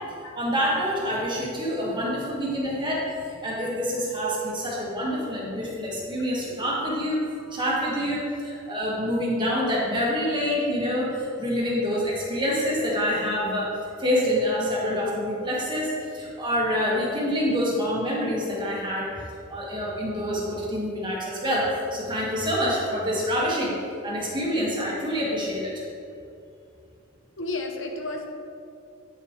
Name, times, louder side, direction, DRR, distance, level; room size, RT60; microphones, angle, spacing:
voice 1, 0.4-19.1 19.5-23.7 24.0-25.7, equal, 25° right, -4 dB, 1.7 m, -26 dB
voice 2, 27.4-28.3, left 2 dB, 70° left, 2 dB, 0.9 m, -32 dB
9.7 x 6.4 x 3.3 m, 2.5 s
head